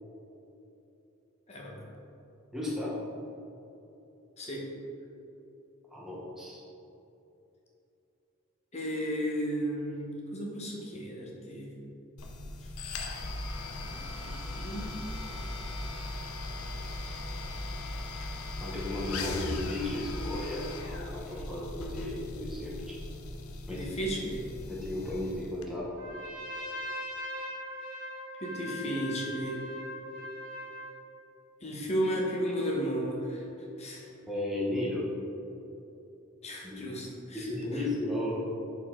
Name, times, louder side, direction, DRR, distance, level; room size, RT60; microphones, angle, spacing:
voice 1, 1.5-1.8 4.4-4.6 8.7-11.7 13.8-14.9 23.7-24.4 28.4-29.6 31.6-33.4 33.8-34.1 36.4-37.5, equal, 30° left, -2 dB, 1.1 m, -34 dB
voice 2, 2.5-2.9 5.9-6.6 18.6-23.0 23.7-23.8 24.7-25.9 34.3-35.0 36.6-36.8 37.3-38.5, left 1 dB, ahead, -7 dB, 0.9 m, -34 dB
sound 1, 12.2-25.7, left 2 dB, 90° left, 0.6 m, -38 dB
Trumpet, 25.9-31.0, left 1 dB, 55° right, 1.2 m, -40 dB
6.5 x 4.7 x 3.7 m, 2.9 s
head